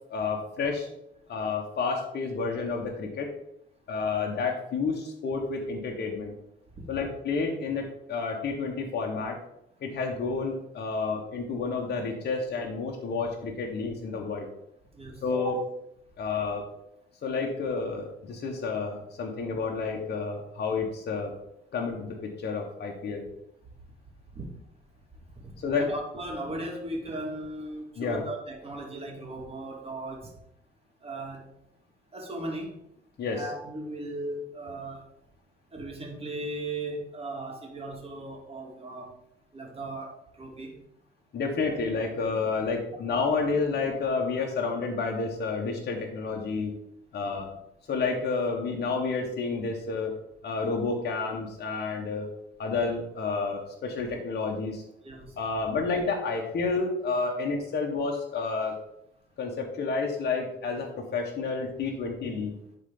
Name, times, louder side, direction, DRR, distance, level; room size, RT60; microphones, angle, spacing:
voice 1, 0.1-0.9 1.3-3.3 3.9-6.3 6.9-9.4 9.8-14.5 15.2-15.6 16.2-16.7 17.2-21.3 21.7-23.2 25.6-25.8 28.0-28.2 33.2-33.5 41.3-46.7 47.1-47.5 47.9-50.1 50.4-52.3 52.6-54.8 55.4-58.7 59.4-62.5, left 4 dB, 55° left, 1 dB, 1.3 m, -30 dB
voice 2, 14.9-15.6 24.3-24.5 25.3-30.3 31.0-31.5 32.1-32.8 33.3-35.1 35.7-39.2 39.5-40.8 55.0-55.4, right 2 dB, 30° right, 0 dB, 2.2 m, -37 dB
10.5 x 3.9 x 3.8 m, 0.76 s
cardioid pair, 90°, 20 cm